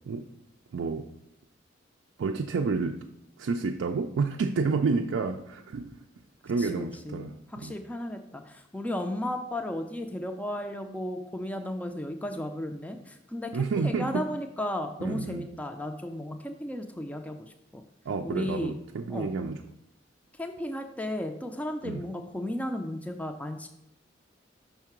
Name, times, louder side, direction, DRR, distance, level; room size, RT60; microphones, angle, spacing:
voice 1, 0.7-1.1 2.2-3.0 3.4-6.0 6.4-7.8 13.5-14.3 15.0-15.5 18.1-19.6 21.8-22.1, right 4 dB, 80° right, 3 dB, 0.4 m, -30 dB
voice 2, 6.6-7.3 7.6-17.8 18.2-18.7 19.1-19.3 20.4-23.7, left 1 dB, 10° left, 5 dB, 0.4 m, -34 dB
5.6 x 3.7 x 5.9 m, 0.79 s
head